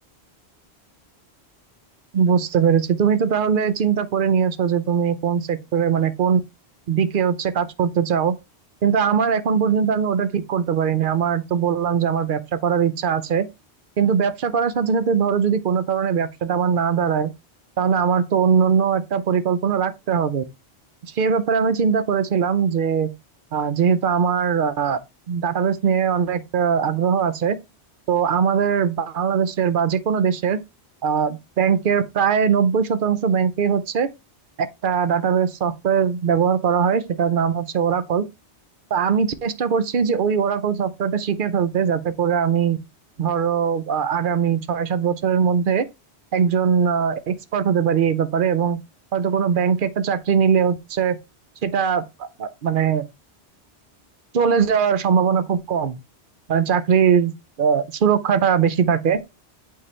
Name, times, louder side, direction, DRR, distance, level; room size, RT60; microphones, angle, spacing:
voice 1, 2.1-6.4 6.9-8.4 8.8-13.5 14.0-17.3 17.8-20.4 21.1-23.1 23.5-25.0 25.3-27.6 28.1-30.6 31.0-34.1 34.8-38.2 38.9-42.8 43.2-45.9 46.3-48.8 49.1-51.2 51.6-53.0 54.3-56.0 56.5-59.2, right 7 dB, 55° right, 0.8 m, -21 dB
8.6 x 3.8 x 3.2 m
omnidirectional pair, 1.1 m